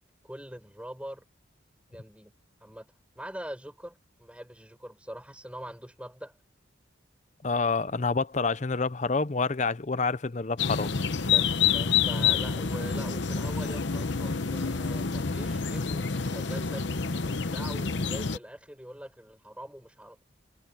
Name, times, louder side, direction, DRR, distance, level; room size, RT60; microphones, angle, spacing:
voice 1, 0.2-1.2 1.9-2.3 2.6-2.9 3.1-6.3 11.3-20.2, equal, 5° right, 5.0 m, -43 dB
voice 2, 7.4-10.9, left 4 dB, 35° left, 0.6 m, -28 dB
sound 1, 10.6-18.4, left 6 dB, 65° left, 0.9 m, -28 dB
head